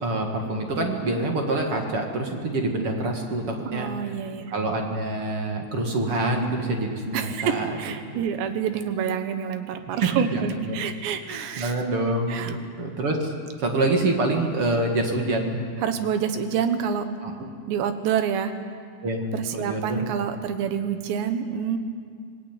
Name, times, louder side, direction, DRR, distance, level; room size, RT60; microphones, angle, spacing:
voice 1, 0.0-3.9 4.5-7.8 10.0-10.8 11.3-13.3 13.6-15.6 17.2-17.5 19.0-19.2 19.5-20.0, right 2 dB, 40° right, 2 dB, 2.3 m, -26 dB
voice 2, 3.7-4.5 7.1-11.7 12.3-12.6 15.8-17.1 17.7-18.5 19.3-21.8, right 8 dB, 85° right, 8 dB, 3.5 m, -27 dB
25.5 x 19.0 x 9.2 m, 2.1 s
omnidirectional pair, 4.9 m